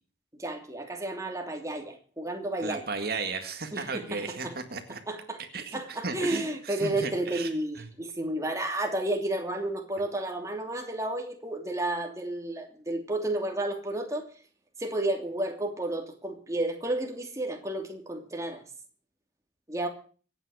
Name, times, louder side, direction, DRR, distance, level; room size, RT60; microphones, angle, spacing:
voice 1, 0.4-2.8 3.7-4.5 5.1-5.4 5.7-14.2 14.8-18.6 19.7-19.9, right 1 dB, 15° right, 3 dB, 2.8 m, -32 dB
voice 2, 2.6-5.0 5.4-7.9, right 4 dB, 55° right, 6 dB, 2.0 m, -35 dB
25.5 x 9.3 x 4.9 m, 0.41 s
head